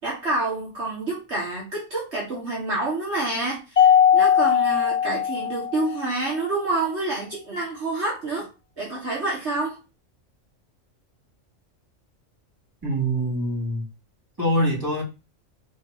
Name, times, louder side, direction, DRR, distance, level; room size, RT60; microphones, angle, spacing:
voice 1, 0.0-8.5 8.8-9.8, right 2 dB, 60° right, -4 dB, 2.2 m, -28 dB
Mallet percussion, 3.8-6.2, left 8 dB, 35° left, 1.0 m, -19 dB
voice 2, 12.8-13.8 14.4-15.0, right 1 dB, 15° right, -7 dB, 3.6 m, -24 dB
5.2 x 4.0 x 4.7 m, 0.28 s
omnidirectional pair, 1.3 m